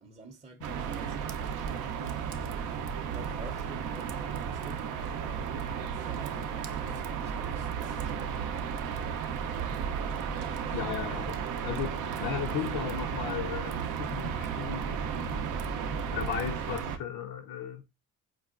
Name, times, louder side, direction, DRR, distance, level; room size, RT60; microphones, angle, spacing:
voice 1, 0.0-2.7 3.1-8.6, right 4 dB, 20° right, 0.5 m, -49 dB
sound 1, 0.6-17.0, right 7 dB, 90° right, 0.5 m, -34 dB
voice 2, 10.7-15.5 16.1-17.8, left 9 dB, 75° left, 0.5 m, -36 dB
4.6 x 2.2 x 2.3 m
cardioid pair, 90°, 30 cm